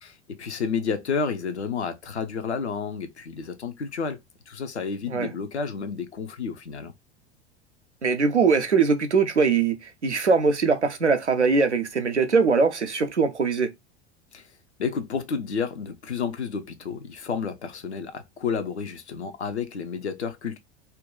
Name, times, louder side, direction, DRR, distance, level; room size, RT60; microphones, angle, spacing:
voice 1, 0.0-4.2 4.5-6.9 14.3-14.5 14.8-20.6, left 5 dB, 80° left, 0.7 m, -31 dB
voice 2, 8.0-13.7, right 4 dB, 90° right, 0.6 m, -22 dB
2.8 x 2.2 x 3.7 m
figure-of-eight pair, 80°, 33 cm